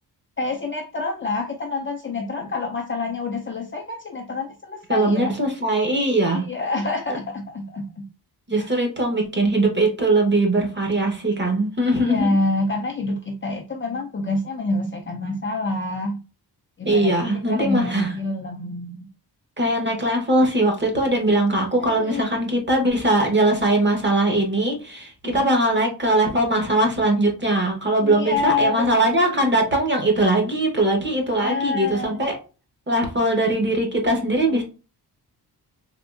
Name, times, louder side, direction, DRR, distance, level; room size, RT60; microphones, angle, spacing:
voice 1, 0.4-5.3 6.3-8.0 8.6-8.7 11.9-16.2 16.8-19.1 21.8-22.3 25.2-25.5 28.0-29.5 31.4-32.2 34.2-34.3, left 3 dB, 30° left, 1 dB, 0.5 m, -27 dB
voice 2, 4.9-6.5 8.5-12.3 16.8-18.1 19.6-32.4 32.9-34.6, right 1 dB, 30° right, 1 dB, 1.0 m, -21 dB
3.6 x 3.0 x 2.4 m, 0.32 s
wide cardioid pair, 150°, 39 cm